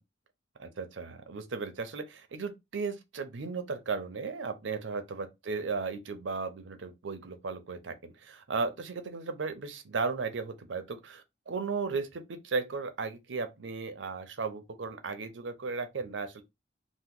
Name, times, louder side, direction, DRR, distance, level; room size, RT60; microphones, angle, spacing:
voice 1, 0.6-16.4, right 4 dB, 90° right, 0.6 m, -35 dB
2.9 x 2.0 x 3.6 m
head